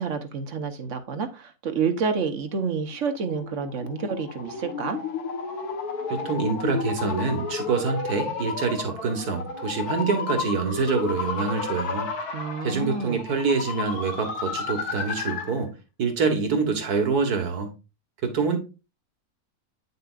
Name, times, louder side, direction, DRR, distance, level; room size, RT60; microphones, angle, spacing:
voice 1, 0.0-5.0 12.3-13.2, right 5 dB, 55° right, 1.2 m, -29 dB
sound 1, 2.9-15.6, left 5 dB, 85° left, 1.8 m, -32 dB
voice 2, 6.1-12.1 12.6-15.7 16.0-17.7 18.2-18.6, right 5 dB, 80° right, 2.0 m, -26 dB
9.0 x 6.7 x 2.4 m
omnidirectional pair, 1.6 m